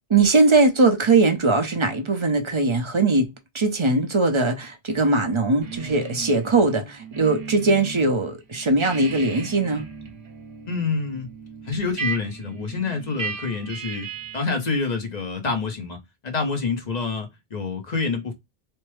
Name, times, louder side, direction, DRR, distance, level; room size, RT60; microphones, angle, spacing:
voice 1, 0.1-9.9, right 3 dB, 35° right, 0.7 m, -20 dB
sound 1, 5.6-8.1 8.4-14.6, right 5 dB, 70° right, 1.2 m, -36 dB
voice 2, 10.7-11.3 11.7-14.1 14.3-16.0 16.2-18.3, left 4 dB, 45° left, 0.9 m, -27 dB
3.4 x 2.0 x 3.1 m
omnidirectional pair, 1.1 m